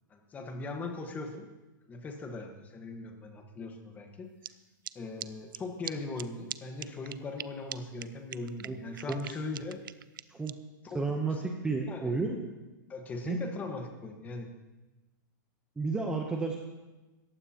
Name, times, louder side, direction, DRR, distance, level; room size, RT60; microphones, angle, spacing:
voice 1, 0.1-1.5 1.9-4.3 4.9-9.8 10.8-11.0 11.3-11.4 11.8-12.1 12.9-14.5, left 3 dB, 15° left, 4 dB, 1.3 m, -39 dB
sound 1, 4.4-4.5 4.8-4.9 5.2-5.3 5.5-5.6 5.8-5.9 6.2-6.3 6.5-6.6 6.8-7.4 7.7-7.8 8.0-8.1 8.3-10.5, right 11 dB, 90° right, 0.5 m, -40 dB
voice 2, 10.9-12.3 13.3-13.4 15.8-16.6, right 3 dB, 5° right, 2 dB, 0.8 m, -31 dB
19.0 x 15.0 x 2.9 m, 1.1 s
supercardioid pair, 155°, 11 cm